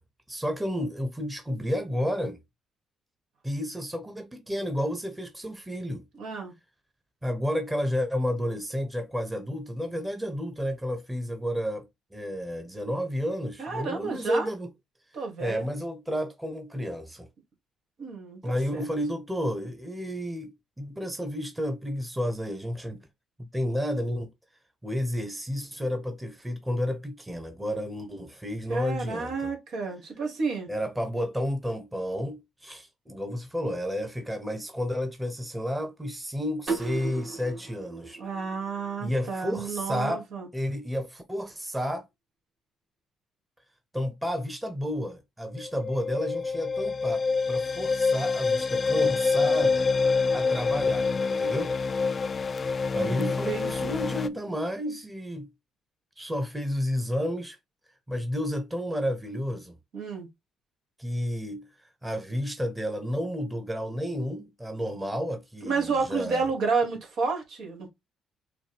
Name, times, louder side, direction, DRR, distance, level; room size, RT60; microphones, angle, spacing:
voice 1, 0.3-2.4 3.4-6.0 7.2-11.8 12.1-14.7 15.4-17.3 18.4-23.0 23.5-24.3 24.8-29.3 30.7-38.2 39.0-40.2 40.5-42.0 43.9-49.9 50.3-51.7 52.9-55.5 56.2-57.6 58.1-59.8 61.0-61.7 62.0-66.5, equal, 10° right, 1.1 m, -31 dB
voice 2, 6.2-6.5 13.6-14.5 15.1-15.6 18.0-18.9 28.7-30.7 38.2-40.5 52.9-54.0 59.9-60.3 65.6-67.9, right 4 dB, 70° right, 1.8 m, -31 dB
sound 1, 36.7-39.5, right 4 dB, 50° right, 2.2 m, -36 dB
sound 2, 45.6-54.3, left 4 dB, 40° left, 0.4 m, -26 dB
6.1 x 2.3 x 3.4 m
supercardioid pair, 65°, 0 cm